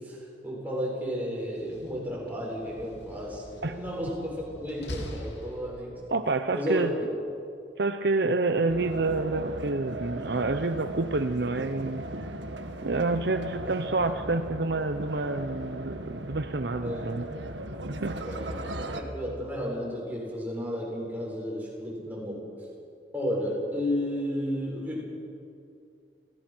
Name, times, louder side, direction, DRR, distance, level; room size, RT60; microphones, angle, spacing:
voice 1, 0.0-6.0 6.5-6.9 8.5-8.7 13.6-13.9 16.8-17.0 18.1-22.7 23.1-25.0, equal, 10° right, -4 dB, 7.1 m, -33 dB
Slam, 1.4-6.1, equal, 70° left, 2.8 m, -43 dB
voice 2, 6.1-6.9 7.8-12.0 12.8-17.2 17.9-18.2, right 3 dB, 60° right, 9 dB, 0.8 m, -28 dB
sound 1, 8.7-19.0, right 1 dB, 80° right, 1.7 m, -37 dB
29.5 x 17.5 x 6.2 m, 2.5 s
head